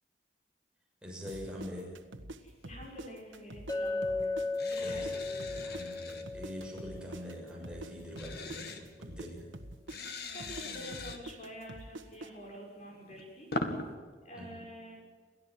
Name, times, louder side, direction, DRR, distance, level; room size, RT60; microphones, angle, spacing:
voice 1, 1.0-2.1 4.8-9.5 14.3-14.7, equal, 5° right, -2 dB, 6.5 m, -44 dB
sound 1, 1.3-3.8 4.0-7.9 8.2-12.3, right 1 dB, 90° right, 1.7 m, -46 dB
voice 2, 2.4-4.3 4.7-5.1 10.1-13.5 14.2-14.9, equal, 40° left, 0 dB, 6.4 m, -47 dB
Chink clink, 3.7-7.9, left 3 dB, 20° left, 1.3 m, -36 dB
sound 2, 4.6-6.2 8.1-8.8 9.9-11.2 12.9-13.8, left 2 dB, 55° left, 2.4 m, -40 dB
29.0 x 15.0 x 9.3 m, 1.5 s
head